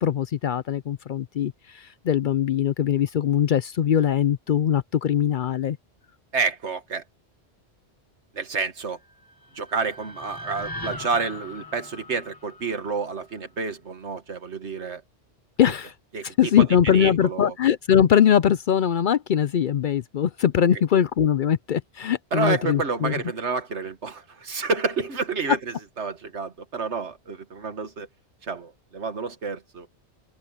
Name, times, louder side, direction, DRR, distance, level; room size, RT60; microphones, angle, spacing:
voice 1, 0.0-5.8 15.6-15.9 16.4-23.1, left 9 dB, 60° left, 0.6 m, -21 dB
voice 2, 6.3-7.0 8.3-9.0 9.5-15.0 16.1-17.5 22.3-28.1 28.4-29.9, right 4 dB, 85° right, 1.9 m, -29 dB
sound 1, 9.0-13.3, left 2 dB, 20° left, 1.4 m, -40 dB
omnidirectional pair, 1.1 m